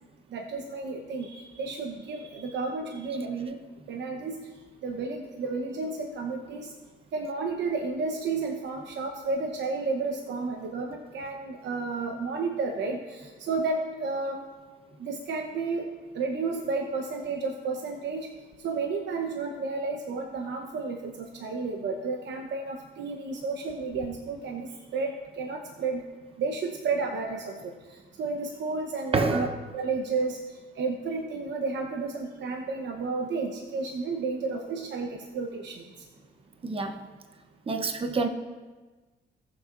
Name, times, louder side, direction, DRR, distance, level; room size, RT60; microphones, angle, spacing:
voice 1, 0.3-3.6 3.9-4.4 4.8-6.7 7.1-14.4 15.0-15.9 16.1-18.3 18.6-26.0 26.4-29.5 29.7-30.4 30.8-35.8, right 4 dB, 65° right, 2 dB, 1.0 m, -32 dB
voice 2, 29.1-29.5 36.6-37.1 37.7-38.3, right 3 dB, 30° right, 6 dB, 0.9 m, -27 dB
19.5 x 7.0 x 2.6 m, 1.3 s
cardioid pair, 90°, 20 cm